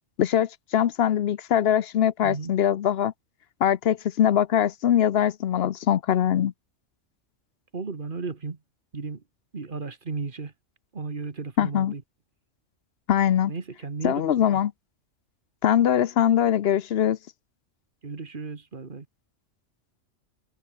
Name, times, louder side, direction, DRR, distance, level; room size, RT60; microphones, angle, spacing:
voice 1, 0.2-3.1 3.6-6.5 11.6-11.9 13.1-13.5 14.0-14.7 15.6-17.2, left 10 dB, 60° left, 0.8 m, -22 dB
voice 2, 7.7-8.6 8.9-9.2 9.5-10.5 10.9-12.0 13.5-14.6 18.0-19.1, right 4 dB, 40° right, 1.7 m, -34 dB
omnidirectional pair, 1.3 m